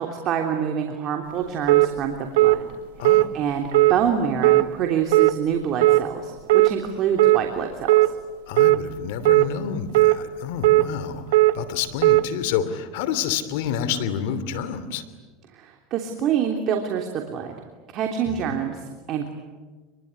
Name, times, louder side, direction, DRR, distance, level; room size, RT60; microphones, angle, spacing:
voice 1, 0.0-2.7 3.1-8.0 15.5-17.6 17.9-19.3, right 8 dB, 50° right, 3 dB, 3.2 m, -26 dB
sound 1, 1.7-1.9 2.4-2.6 3.0-3.3 3.7-3.9 4.4-4.6 5.1-5.3 5.8-6.0 6.5-6.7 7.2-7.4 7.9-8.1 8.6-8.8 9.2-9.5 9.9-10.2 10.6-10.8 11.3-11.5 12.0-12.2, right 18 dB, 85° right, 1.0 m, -16 dB
voice 2, 3.0-3.3 8.5-15.0 18.3-18.5, left 8 dB, 75° left, 12 dB, 2.9 m, -29 dB
27.5 x 22.5 x 9.7 m, 1.4 s
supercardioid pair, 110°, 0 cm